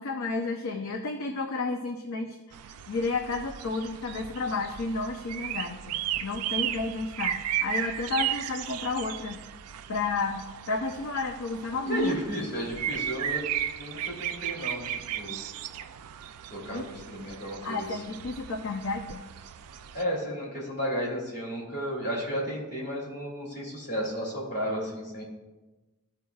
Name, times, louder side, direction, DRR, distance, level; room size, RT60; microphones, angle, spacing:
voice 1, 0.0-9.4 9.9-12.2 16.7-16.8 17.6-19.2, left 3 dB, 65° left, 4 dB, 0.6 m, -32 dB
sound 1, 2.5-20.0, right 10 dB, 75° right, 0.4 m, -35 dB
voice 2, 11.9-13.4 13.8-15.4 16.5-18.0 19.9-25.2, equal, 50° left, -3 dB, 2.6 m, -33 dB
14.0 x 4.7 x 2.3 m, 1.1 s
head